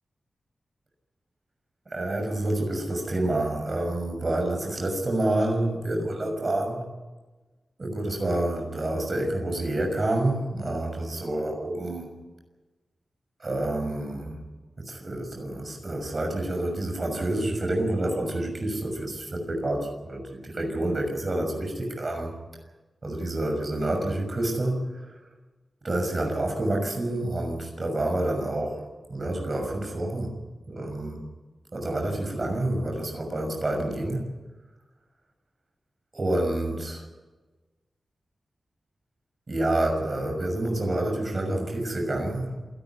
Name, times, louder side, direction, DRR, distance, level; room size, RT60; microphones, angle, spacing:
voice 1, 1.9-6.8 7.8-12.1 13.4-14.4 14.8-22.4 23.0-25.2 25.8-30.4 30.7-31.3 31.7-34.3 36.1-37.0 39.5-42.5, right 1 dB, 35° right, 3 dB, 6.3 m, -28 dB
27.5 x 12.5 x 9.5 m, 1.2 s
wide cardioid pair, 140°, 0 cm